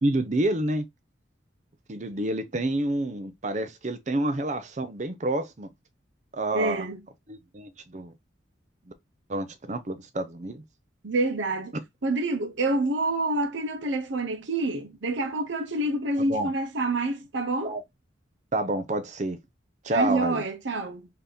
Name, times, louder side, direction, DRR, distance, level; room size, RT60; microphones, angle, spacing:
voice 1, 0.0-0.9 1.9-5.7 6.3-6.9 7.3-8.1 9.3-10.6 11.7-11.8 16.2-16.5 17.6-17.8 18.5-19.4 19.8-20.4, right 1 dB, 40° right, 0.6 m, -28 dB
voice 2, 6.5-7.0 11.0-11.7 12.0-17.7 19.9-21.1, right 2 dB, 75° right, 0.8 m, -27 dB
3.9 x 2.9 x 3.4 m
head